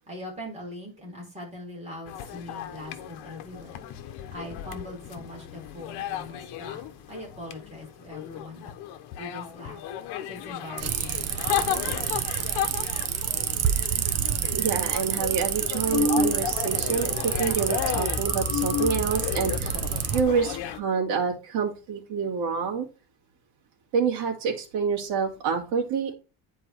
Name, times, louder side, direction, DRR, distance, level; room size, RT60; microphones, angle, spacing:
voice 1, 0.0-8.7 9.2-9.8 10.3-12.7, left 1 dB, 15° right, -1 dB, 3.9 m, -42 dB
sound 1, 2.1-20.8, left 11 dB, 70° left, 1.1 m, -35 dB
sound 2, 10.8-20.2, right 9 dB, 35° right, 0.8 m, -28 dB
voice 2, 14.5-19.8 20.1-22.9 23.9-26.1, right 5 dB, 80° right, -1 dB, 2.6 m, -27 dB
sound 3, 15.8-16.8 17.0-17.3 17.6-20.8, left 4 dB, 35° left, 2.0 m, -30 dB
10.0 x 4.5 x 4.4 m, 0.33 s
cardioid pair, 170°, 41 cm